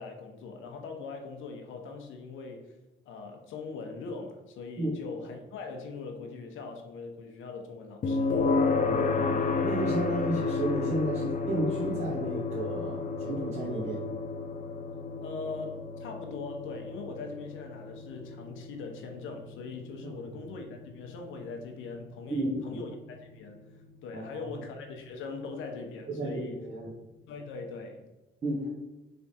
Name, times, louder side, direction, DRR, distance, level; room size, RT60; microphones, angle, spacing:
voice 1, 0.0-2.7 3.1-8.4 15.2-26.6 27.3-28.1, left 4 dB, 80° left, 4 dB, 0.8 m, -41 dB
sound 1, 8.0-23.0, left 4 dB, 40° left, 0.5 m, -32 dB
voice 2, 8.8-14.1 20.1-20.2 22.3-22.8 24.1-24.5 26.1-26.9 28.4-28.7, right 1 dB, 35° right, -7 dB, 1.2 m, -33 dB
3.6 x 3.4 x 4.2 m, 1.1 s
cardioid pair, 90°, 20 cm